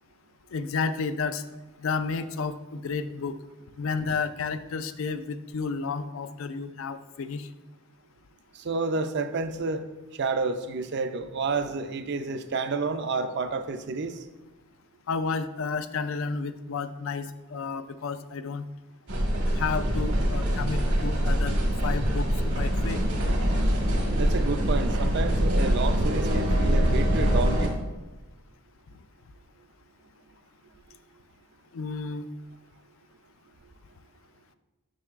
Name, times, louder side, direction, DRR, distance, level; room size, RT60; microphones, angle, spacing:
voice 1, 0.5-1.4 1.8-3.4 3.8-7.5 15.1-18.6 19.5-21.6 21.8-23.0 31.7-32.3, left 4 dB, 65° left, 12 dB, 0.4 m, -31 dB
voice 2, 8.6-9.8 10.2-14.2 24.2-27.8, right 4 dB, 50° right, 9 dB, 0.4 m, -30 dB
sound 1, 19.1-27.7, equal, 75° right, 1.4 m, -24 dB
7.5 x 6.1 x 2.4 m, 1.2 s
head